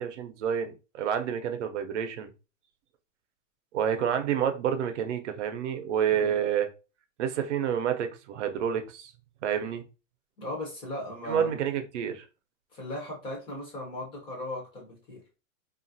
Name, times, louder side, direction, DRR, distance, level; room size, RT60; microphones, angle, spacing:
voice 1, 0.0-2.3 3.7-6.7 7.2-9.1 9.4-9.8 11.3-12.3, right 8 dB, 60° right, 7 dB, 0.7 m, -29 dB
voice 2, 10.4-11.6 12.7-15.2, left 1 dB, 15° left, -2 dB, 0.6 m, -37 dB
3.0 x 2.4 x 2.6 m, 0.31 s
supercardioid pair, 160°, 40 cm